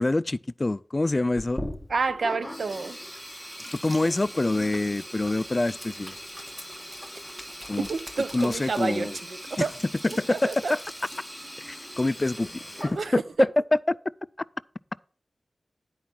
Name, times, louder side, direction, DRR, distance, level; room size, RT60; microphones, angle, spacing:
voice 1, 0.0-1.6 3.8-6.2 7.7-7.9 8.3-9.2 9.6-9.7 10.2-10.3 10.7-10.8 11.6-12.5 12.8-13.2 13.9-14.0, left 2 dB, 30° left, 0.3 m, -26 dB
Sink (filling or washing), 1.3-13.4, equal, 5° right, 1.5 m, -40 dB
voice 2, 1.9-3.0 7.8-9.7 10.1-10.7 12.9-13.5, right 4 dB, 85° right, 0.6 m, -29 dB
10.0 x 4.7 x 6.0 m
wide cardioid pair, 85°, 0 cm